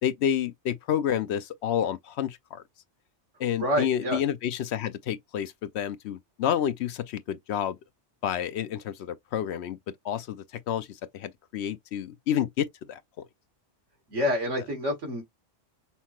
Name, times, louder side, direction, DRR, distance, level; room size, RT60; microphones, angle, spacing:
voice 1, 0.0-2.6 3.4-7.8 8.2-9.8 10.0-13.3, left 9 dB, 70° left, 0.8 m, -29 dB
voice 2, 3.6-4.2 14.1-15.2, left 1 dB, 85° right, 2.3 m, -27 dB
5.7 x 2.0 x 2.9 m
omnidirectional pair, 1.2 m